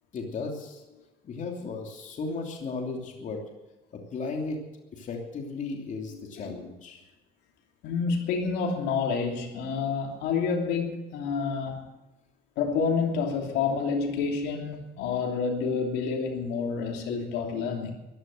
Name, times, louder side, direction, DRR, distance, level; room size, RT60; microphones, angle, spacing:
voice 1, 0.1-0.8 1.2-3.4 3.9-4.6 4.9-7.0, left 4 dB, 50° left, 1 dB, 3.0 m, -35 dB
voice 2, 6.1-6.5 7.8-11.8 12.6-17.9, left 5 dB, 90° left, 2 dB, 3.0 m, -28 dB
15.0 x 11.5 x 7.7 m, 1.0 s
cardioid pair, 110°, 17 cm